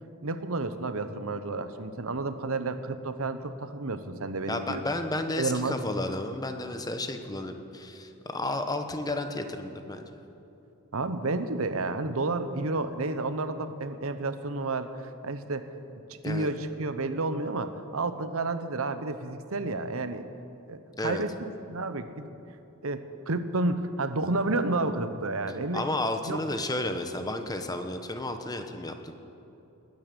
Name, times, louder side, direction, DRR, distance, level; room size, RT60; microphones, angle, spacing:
voice 1, 0.2-4.8 5.4-5.7 10.9-15.7 16.2-20.3 20.7-22.3 22.8-25.8 26.2-26.4, right 3 dB, 70° right, 10 dB, 1.0 m, -31 dB
voice 2, 4.5-10.0 16.2-16.5 21.0-21.2 25.7-29.1, left 2 dB, 15° left, 7 dB, 1.0 m, -32 dB
20.5 x 9.5 x 6.9 m, 3.0 s
head